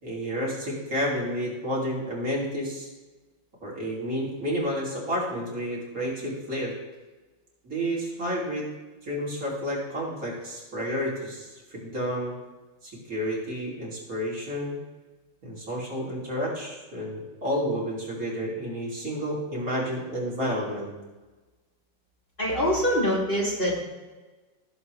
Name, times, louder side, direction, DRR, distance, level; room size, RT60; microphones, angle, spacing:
voice 1, 0.0-2.9 3.6-6.7 7.6-8.7 9.0-12.4 12.8-14.8 15.4-20.9, equal, 45° right, -5 dB, 3.2 m, -30 dB
voice 2, 22.4-23.8, equal, 25° left, -5 dB, 2.5 m, -24 dB
16.5 x 7.2 x 3.2 m, 1.2 s
omnidirectional pair, 2.1 m